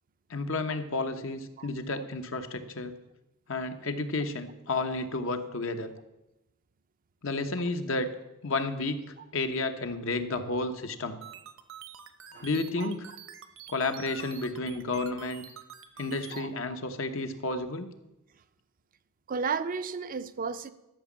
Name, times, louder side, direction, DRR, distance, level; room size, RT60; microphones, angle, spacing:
voice 1, 0.3-2.9 3.5-5.9 7.2-8.1 8.4-11.2 12.4-13.1 13.7-15.5 16.0-17.9, left 3 dB, 65° left, 7 dB, 1.0 m, -31 dB
sound 1, 11.2-16.4, right 8 dB, 70° right, 1.0 m, -47 dB
voice 2, 19.3-20.7, right 5 dB, 40° right, 12 dB, 0.5 m, -33 dB
12.5 x 6.0 x 7.3 m, 0.94 s
head